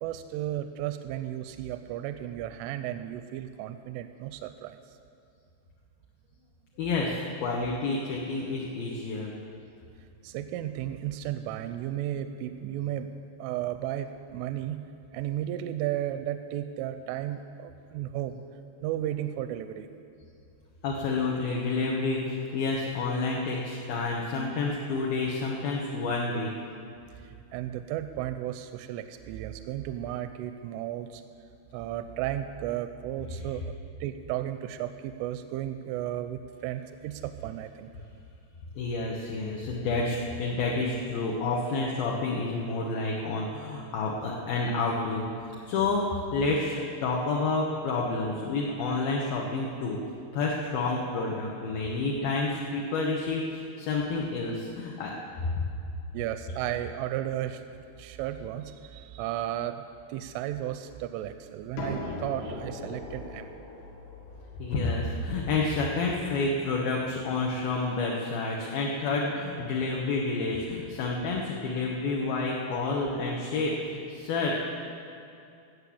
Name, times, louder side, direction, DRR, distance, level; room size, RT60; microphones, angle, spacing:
voice 1, 0.0-4.8 10.2-13.1 13.4-14.8 15.1-18.4 18.8-19.9 27.2-31.2 31.7-33.6 34.0-37.9 56.1-59.8 60.1-63.5 68.6-68.7, right 12 dB, 85° right, 9 dB, 3.0 m, -34 dB
voice 2, 6.8-9.3 20.8-26.5 38.8-45.3 45.7-46.0 46.3-50.0 50.3-55.1 55.4-55.7 64.6-74.6, left 3 dB, 70° left, -2 dB, 2.3 m, -29 dB
sound 1, 61.8-67.4, left 2 dB, 90° left, 4.5 m, -41 dB
16.0 x 6.7 x 8.4 m, 2.6 s
omnidirectional pair, 5.6 m